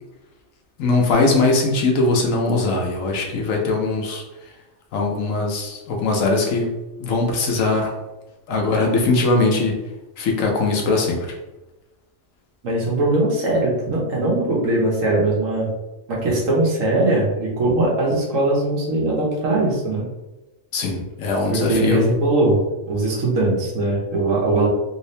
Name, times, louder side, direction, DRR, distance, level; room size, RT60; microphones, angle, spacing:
voice 1, 0.8-4.2 4.9-6.7 7.0-7.9 8.5-9.8 10.2-11.3 20.7-22.0, left 3 dB, 80° left, 1 dB, 1.2 m, -20 dB
voice 2, 12.6-15.7 16.1-20.0 21.5-22.6 22.9-24.7, right 2 dB, 75° right, -3 dB, 1.4 m, -20 dB
3.4 x 2.7 x 3.2 m, 1.0 s
omnidirectional pair, 1.3 m